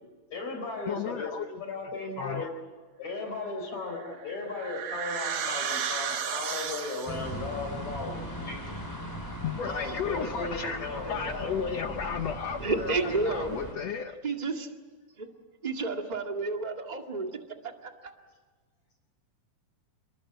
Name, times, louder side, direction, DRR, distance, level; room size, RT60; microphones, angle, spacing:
voice 1, 0.3-2.5 3.0-8.6 9.6-11.5, left 3 dB, 50° left, 2 dB, 5.3 m, -36 dB
voice 2, 0.9-1.6 2.2-2.5 9.4-14.2, left 6 dB, 80° left, 7 dB, 1.5 m, -34 dB
sound 1, 3.9-7.4, right 7 dB, 65° right, 3.3 m, -33 dB
sound 2, 7.1-13.7, equal, 5° left, 5.3 m, -39 dB
voice 3, 12.6-13.6 14.2-14.7 15.2-15.3 15.6-17.3 18.0-18.1, right 3 dB, 25° right, 3 dB, 1.0 m, -30 dB
28.0 x 23.0 x 7.9 m, 1.4 s
omnidirectional pair, 4.3 m